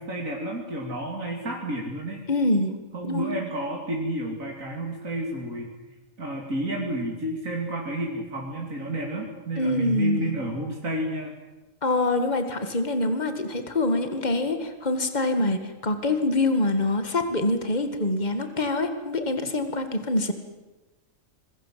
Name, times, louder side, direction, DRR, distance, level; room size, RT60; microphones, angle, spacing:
voice 1, 0.0-2.2 2.9-5.7 6.2-11.3, right 1 dB, 80° right, -1 dB, 3.3 m, -31 dB
voice 2, 2.3-2.7 3.0-3.4 9.6-10.3 11.8-20.3, left 2 dB, 30° left, 8 dB, 2.2 m, -25 dB
26.0 x 22.0 x 7.7 m, 1.1 s
omnidirectional pair, 1.4 m